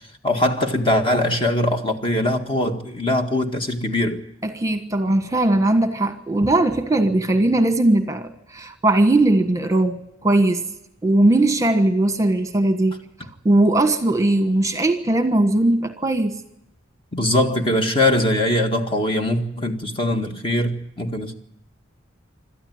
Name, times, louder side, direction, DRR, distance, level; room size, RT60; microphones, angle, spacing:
voice 1, 0.2-4.2 17.1-21.3, left 1 dB, 25° left, 1.8 m, -21 dB
voice 2, 4.4-10.6 11.0-13.0 13.4-16.4, right 2 dB, 15° right, 1.4 m, -19 dB
27.5 x 13.0 x 9.4 m
head